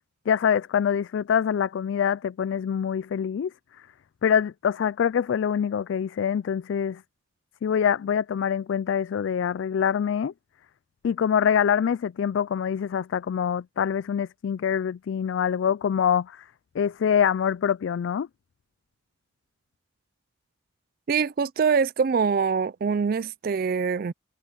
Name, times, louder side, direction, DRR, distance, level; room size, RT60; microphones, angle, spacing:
voice 1, 0.3-3.5 4.2-7.0 7.6-10.3 11.0-16.5 16.7-18.3, left 8 dB, 70° left, 0.3 m, -25 dB
voice 2, 21.1-24.1, right 5 dB, 45° right, 0.3 m, -24 dB
head